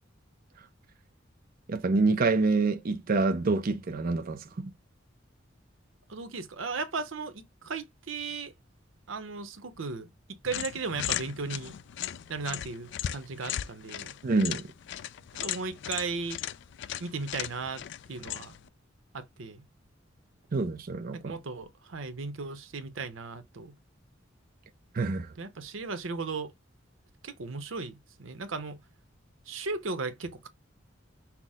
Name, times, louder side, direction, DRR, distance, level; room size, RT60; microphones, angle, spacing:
voice 1, 1.7-4.7 14.2-14.7 20.5-21.3 24.9-25.3, right 3 dB, 45° right, 0.5 m, -27 dB
voice 2, 6.1-8.5 9.1-10.1 10.4-11.7 12.3-14.1 15.4-16.4 17.0-17.8 18.1-18.5 19.1-19.6 21.1-23.7 25.4-26.5 27.2-28.8 29.5-30.5, right 4 dB, 90° right, 0.8 m, -36 dB
sound 1, 10.5-18.7, left 11 dB, 65° left, 0.3 m, -37 dB
5.9 x 2.0 x 3.5 m
head